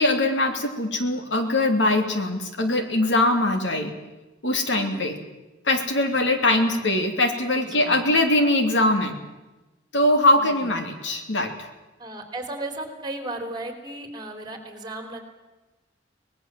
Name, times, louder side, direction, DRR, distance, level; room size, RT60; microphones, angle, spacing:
voice 1, 0.0-3.9 4.4-5.1 5.6-9.1 9.9-11.7, left 1 dB, 75° left, 5 dB, 3.1 m, -22 dB
voice 2, 4.7-5.1 6.4-6.8 7.6-8.0 10.3-11.0 12.0-15.2, right 1 dB, 25° right, 6 dB, 3.5 m, -36 dB
24.0 x 20.0 x 7.7 m, 1.1 s
head